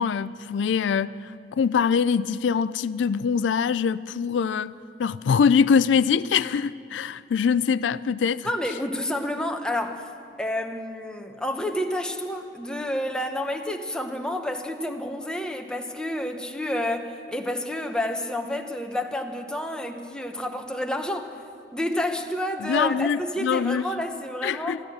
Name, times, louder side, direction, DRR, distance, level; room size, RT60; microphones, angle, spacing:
voice 1, 0.0-4.7 5.0-8.5 22.6-24.0 24.4-24.8, left 6 dB, 85° left, 15 dB, 0.4 m, -23 dB
voice 2, 8.4-10.1 10.4-21.4 21.7-24.8, left 1 dB, 5° left, 4 dB, 1.0 m, -29 dB
13.0 x 13.0 x 8.7 m, 2.3 s
head